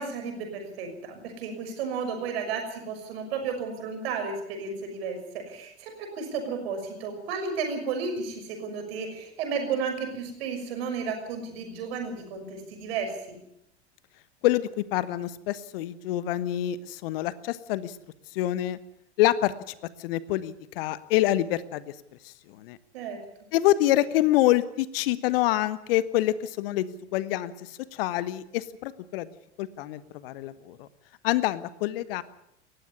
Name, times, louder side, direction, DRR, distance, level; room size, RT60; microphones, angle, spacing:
voice 1, 0.0-13.4 22.9-23.2, right 5 dB, 60° right, 4 dB, 6.2 m, -33 dB
voice 2, 14.4-17.9 18.3-18.8 19.2-19.7 20.0-21.9 22.6-22.8 23.5-29.3 29.6-30.9 31.2-32.2, left 14 dB, 55° left, 16 dB, 1.2 m, -26 dB
19.0 x 15.0 x 9.9 m, 0.82 s
figure-of-eight pair, 80°, 35 cm